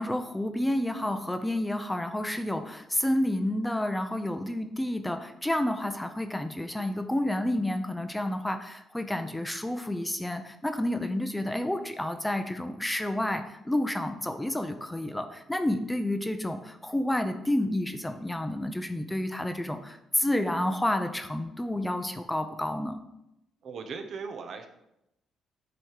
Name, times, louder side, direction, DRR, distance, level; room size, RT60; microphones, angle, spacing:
voice 1, 0.0-23.0, left 1 dB, 10° left, 7 dB, 0.5 m, -30 dB
voice 2, 23.6-24.7, right 5 dB, 65° right, 5 dB, 0.8 m, -38 dB
7.7 x 3.0 x 4.9 m, 0.86 s
cardioid pair, 90°, 0 cm